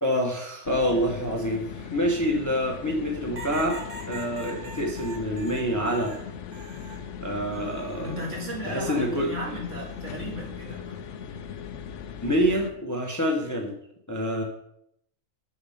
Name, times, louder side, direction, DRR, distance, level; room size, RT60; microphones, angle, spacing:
voice 1, 0.0-3.8 4.1-6.1 7.2-8.1 8.6-9.3 12.2-13.7 14.1-14.4, equal, 15° left, 1 dB, 1.0 m, -26 dB
sound 1, 0.6-12.7, left 7 dB, 65° left, 1.0 m, -39 dB
sound 2, 3.4-7.1 7.5-8.3 9.7-10.1, right 2 dB, 45° right, 1.3 m, -43 dB
voice 2, 8.0-11.1, equal, 60° right, -2 dB, 2.6 m, -35 dB
7.0 x 6.4 x 5.7 m, 0.74 s
omnidirectional pair, 1.4 m